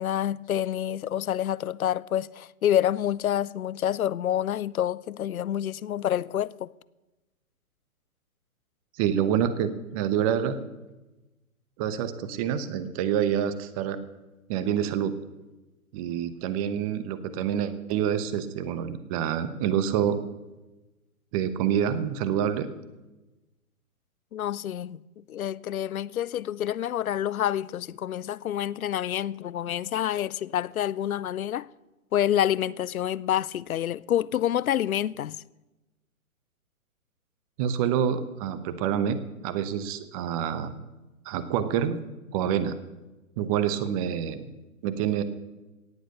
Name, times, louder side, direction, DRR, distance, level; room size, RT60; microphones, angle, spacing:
voice 1, 0.0-6.7 24.3-25.0 25.3-31.7 32.1-35.4, left 11 dB, 70° left, 0.6 m, -28 dB
voice 2, 9.0-10.6 11.8-14.0 14.5-15.2 15.9-20.2 21.3-22.7 37.6-39.2 39.4-40.7 41.2-42.0 42.3-42.8 43.4-44.5 44.8-45.2, right 9 dB, 25° right, 0.9 m, -27 dB
17.5 x 7.6 x 6.7 m
hypercardioid pair, 130°, 43 cm